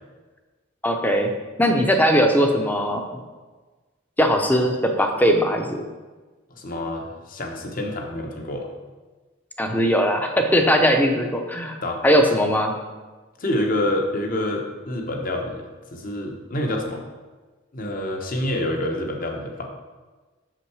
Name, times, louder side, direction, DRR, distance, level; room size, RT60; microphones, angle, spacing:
voice 1, 0.8-1.3 1.6-3.0 4.2-5.8 9.6-11.8 12.0-12.8, equal, 10° left, 4 dB, 0.6 m, -19 dB
voice 2, 6.5-8.7 11.8-12.0 13.4-17.0 17.7-19.7, left 1 dB, 45° left, 2 dB, 1.0 m, -27 dB
6.4 x 6.0 x 4.8 m, 1.3 s
head